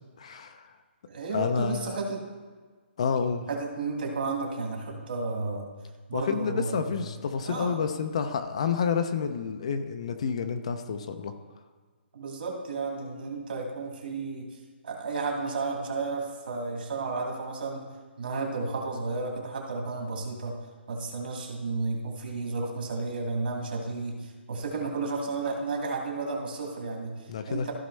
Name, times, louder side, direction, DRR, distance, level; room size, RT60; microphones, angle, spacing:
voice 1, 0.2-0.7 1.3-2.0 3.0-3.5 6.1-11.3 27.3-27.7, left 6 dB, 30° left, 9 dB, 0.4 m, -29 dB
voice 2, 1.1-2.2 3.5-5.7 6.1-7.1 7.4-7.8 12.1-14.5 14.8-17.8 18.2-20.6 20.9-27.7, right 3 dB, 55° right, 0 dB, 1.9 m, -32 dB
14.5 x 5.1 x 3.2 m, 1.5 s
hypercardioid pair, 175°, 6 cm